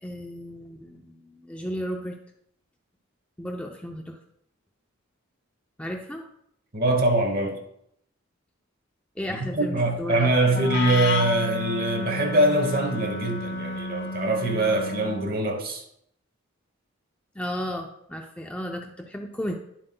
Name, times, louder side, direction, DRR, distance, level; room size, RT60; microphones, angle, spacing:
voice 1, 0.0-2.2 3.4-4.2 5.8-6.2 9.2-10.3 17.3-19.6, equal, 5° left, 0.5 m, -34 dB
voice 2, 6.7-7.6 9.3-15.8, right 2 dB, 45° right, 1.0 m, -23 dB
Wind instrument woodwind instrument, 10.5-15.4, left 2 dB, 55° left, 0.6 m, -31 dB
10.0 x 7.5 x 2.2 m
head